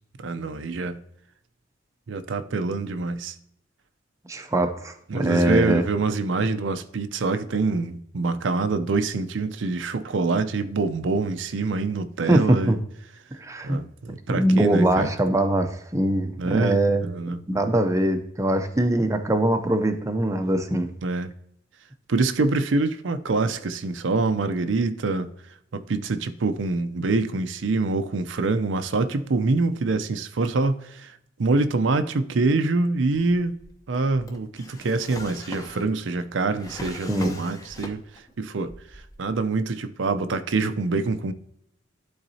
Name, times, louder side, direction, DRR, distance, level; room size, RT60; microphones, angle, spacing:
voice 1, 0.2-1.0 2.1-3.3 5.1-12.7 13.6-15.1 16.4-17.6 21.0-21.3 22.1-25.3 25.7-33.6 33.9-38.0 38.4-41.3, right 3 dB, 75° right, 0.5 m, -25 dB
voice 2, 4.3-5.9 12.3-12.8 13.4-13.8 14.3-20.9 37.1-37.4, right 1 dB, 15° right, 0.5 m, -22 dB
Drawer open or close, 33.1-38.3 38.6-39.5, left 1 dB, 20° left, 0.8 m, -41 dB
12.0 x 3.9 x 2.7 m
head